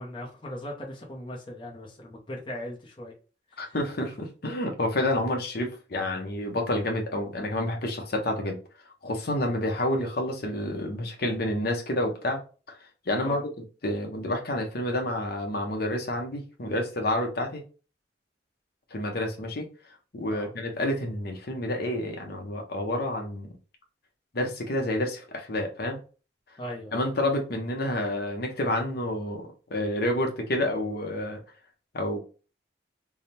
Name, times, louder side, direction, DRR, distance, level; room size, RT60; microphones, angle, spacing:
voice 1, 0.0-3.1 3.5-3.8 13.2-13.4 20.3-20.5 26.6-27.0, left 1 dB, 25° left, 0.8 m, -39 dB
voice 2, 3.6-8.6 9.0-12.4 12.7-12.8 13.1-13.4 13.8-17.6 18.9-19.7 20.1-23.5 24.3-26.0 26.9-31.4 31.9-32.2, left 1 dB, 55° left, 0.9 m, -29 dB
3.5 x 2.2 x 4.2 m
head